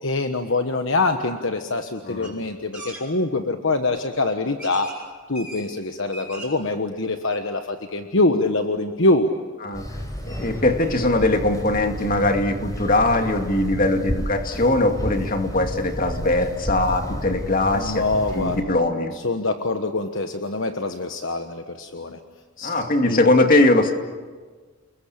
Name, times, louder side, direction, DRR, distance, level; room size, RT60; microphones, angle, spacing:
voice 1, 0.0-4.9 5.3-9.3 17.7-18.8 19.2-22.2 22.6-22.7 23.1-23.2, left 2 dB, 60° left, 6 dB, 1.3 m, -24 dB
voice 2, 2.0-2.3 9.6-9.9 10.2-18.1 18.3-19.1 22.6-23.9, left 2 dB, 40° left, 4 dB, 2.4 m, -21 dB
sound 1, 2.2-2.3 2.7-3.0 3.9-4.0 4.6-5.0 5.3-5.7 6.0-6.6 7.0-7.1 7.3-7.4, right 1 dB, 5° right, 6.6 m, -39 dB
sound 2, 9.7-18.6, equal, 15° left, 4.8 m, -32 dB
30.0 x 21.5 x 8.7 m, 1.4 s
head